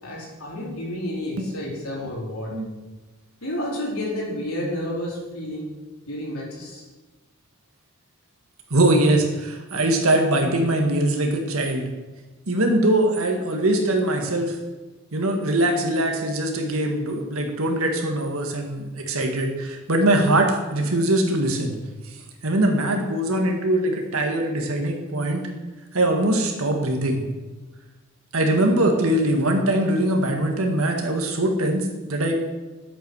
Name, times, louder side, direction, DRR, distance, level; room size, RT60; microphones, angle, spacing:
voice 1, 0.0-2.5 3.4-5.7 6.0-6.8, left 1 dB, 90° left, -3 dB, 4.3 m, -30 dB
voice 2, 8.7-11.9 12.5-14.6 15.1-21.7 22.4-25.4 25.9-27.2 28.3-32.5, right 1 dB, 75° right, 2 dB, 1.8 m, -22 dB
10.5 x 8.3 x 6.3 m, 1.2 s
head